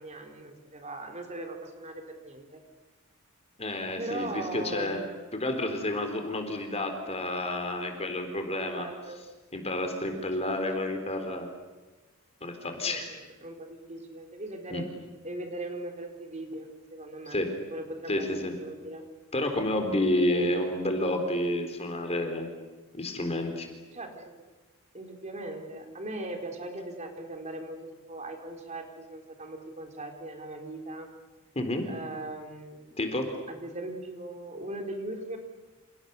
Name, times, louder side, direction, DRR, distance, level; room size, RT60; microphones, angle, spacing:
voice 1, 0.0-2.6 4.0-5.1 8.7-9.3 10.4-11.1 12.8-14.9 15.2-17.4 17.7-18.3 18.6-19.0 20.2-20.8 23.9-24.4 24.9-31.1 31.9-33.0 33.5-35.4, right 2 dB, 30° right, 4 dB, 3.8 m, -39 dB
voice 2, 3.6-5.0 5.3-8.9 9.5-11.5 12.4-13.1 14.7-14.8 17.3-17.5 18.1-18.5 19.3-22.5 22.9-23.7 31.6-31.9 33.0-33.3, left 1 dB, 30° left, 5 dB, 3.9 m, -30 dB
29.5 x 28.5 x 6.9 m, 1.2 s
head